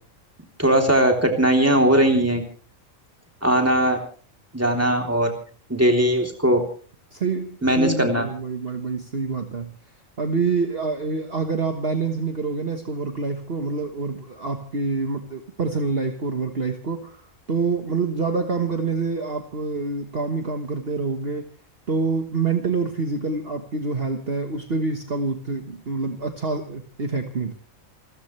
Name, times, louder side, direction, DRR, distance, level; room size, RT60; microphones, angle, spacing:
voice 1, 0.6-2.4 3.4-4.0 4.5-5.3 5.7-6.6 7.6-8.3, right 1 dB, 10° right, 3 dB, 3.4 m, -19 dB
voice 2, 7.1-9.7 10.2-17.2 17.5-21.5 21.9-27.5, right 4 dB, 45° right, 5 dB, 1.6 m, -26 dB
28.0 x 14.5 x 3.3 m, 0.42 s
omnidirectional pair, 1.4 m